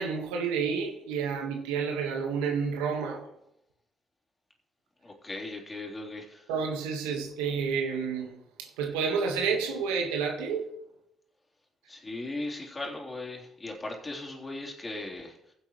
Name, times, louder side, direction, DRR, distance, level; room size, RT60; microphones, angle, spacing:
voice 1, 0.0-3.3 6.5-8.3 8.6-10.6, right 6 dB, 90° right, 1.5 m, -30 dB
voice 2, 5.0-6.5 11.9-15.4, left 2 dB, 25° left, 3.5 m, -38 dB
15.5 x 7.9 x 3.2 m
hypercardioid pair, 55°, 0 cm